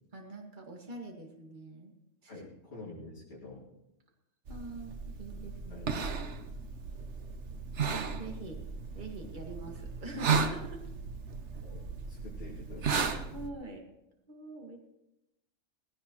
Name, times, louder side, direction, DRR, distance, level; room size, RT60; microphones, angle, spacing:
voice 1, 0.1-1.9 2.2-2.4 4.5-5.9 7.9-8.6 8.9-10.8 13.3-13.9 14.3-14.8, right 2 dB, 40° right, 1 dB, 2.1 m, -44 dB
voice 2, 2.3-3.7 5.7-5.9 11.6-13.1, left 2 dB, 55° left, -8 dB, 3.1 m, -47 dB
sound 1, 4.5-13.5, right 5 dB, 65° right, 1.3 m, -35 dB
18.5 x 16.0 x 3.1 m, 0.89 s
omnidirectional pair, 1.3 m